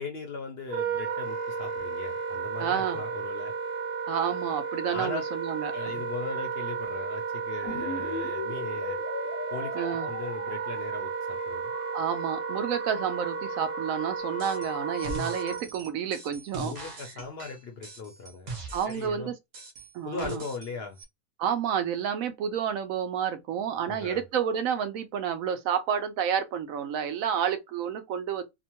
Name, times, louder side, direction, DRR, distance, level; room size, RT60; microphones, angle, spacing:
voice 1, 0.0-3.5 4.9-5.2 5.7-9.0 9.5-11.7 16.6-18.5 18.8-19.3 20.0-21.0 23.9-24.2, left 4 dB, 60° left, 0.7 m, -38 dB
Wind instrument woodwind instrument, 0.6-15.6, right 5 dB, 90° right, 1.2 m, -33 dB
voice 2, 2.6-3.0 4.1-5.8 7.7-7.8 9.7-10.1 11.9-16.7 18.7-19.3 19.9-20.4 21.4-28.4, right 8 dB, 70° right, 0.9 m, -30 dB
sound 1, 7.7-15.6, left 8 dB, 75° left, 1.1 m, -41 dB
sound 2, 14.4-14.7 15.0-19.1 19.5-20.7 21.0-21.1, right 2 dB, 50° right, 0.5 m, -41 dB
2.9 x 2.2 x 2.8 m
omnidirectional pair, 1.6 m